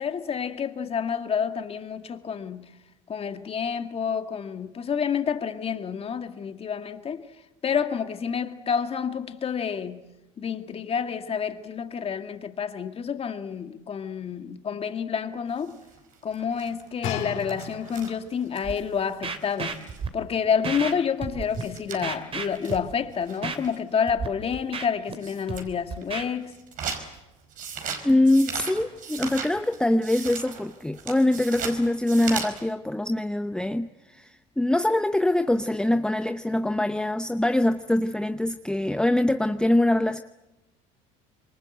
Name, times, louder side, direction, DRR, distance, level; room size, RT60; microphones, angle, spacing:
voice 1, 0.0-2.7 3.1-7.3 7.6-10.0 10.4-15.8 16.2-19.8 20.1-26.5, left 7 dB, 35° left, 2.1 m, -29 dB
sound 1, 15.6-20.1 20.5-20.6 20.8-20.9 21.2-21.3 21.5-23.9 24.4-24.6 25.1-25.7 26.0-32.6, right 6 dB, 55° right, 5.1 m, -38 dB
sound 2, 17.0-18.3 19.1-19.2, left 8 dB, 65° left, 5.6 m, -34 dB
Scratching (performance technique), 18.6-18.7 19.2-20.1 20.6-20.9 21.2-21.6 22.0-22.9 23.4-23.6 24.1-24.3 24.5-25.1 25.5-26.2, right 5 dB, 35° right, 3.0 m, -32 dB
voice 2, 28.0-40.2, left 1 dB, 5° left, 0.9 m, -23 dB
26.5 x 23.5 x 7.9 m
supercardioid pair, 85°, 16 cm